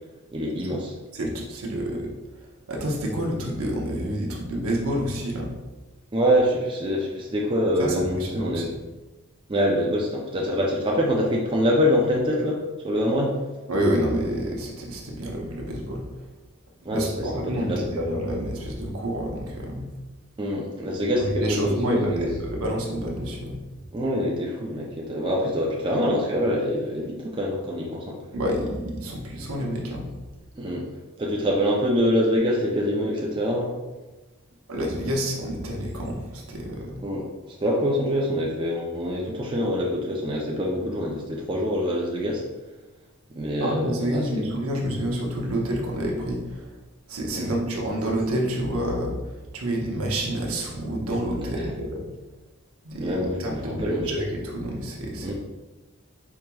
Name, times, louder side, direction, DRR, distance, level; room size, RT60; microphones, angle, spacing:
voice 1, 0.3-0.9 6.1-8.7 9.5-13.4 16.8-17.9 20.4-22.3 23.9-28.2 30.6-30.9 31.2-33.7 37.0-42.4 43.3-44.3 47.3-47.5 51.4-51.7 53.0-54.1 55.2-55.3, equal, 25° right, -2 dB, 0.4 m, -25 dB
voice 2, 1.1-2.1 2.7-5.5 7.8-8.8 13.7-16.1 16.9-19.9 21.4-23.6 28.3-30.1 34.7-37.0 43.6-46.7 47.1-49.2 49.5-52.0 52.8-55.3, equal, 80° right, -1 dB, 0.8 m, -28 dB
4.6 x 2.9 x 2.2 m, 1.1 s
head